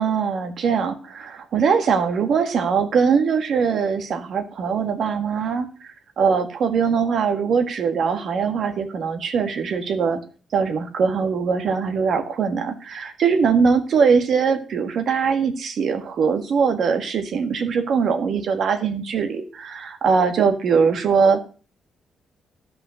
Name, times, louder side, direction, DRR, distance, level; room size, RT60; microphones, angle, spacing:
voice 1, 0.0-10.2 10.5-21.4, right 6 dB, 60° right, 7 dB, 1.6 m, -21 dB
13.0 x 5.6 x 6.4 m, 0.38 s
cardioid pair, 130°, 0 cm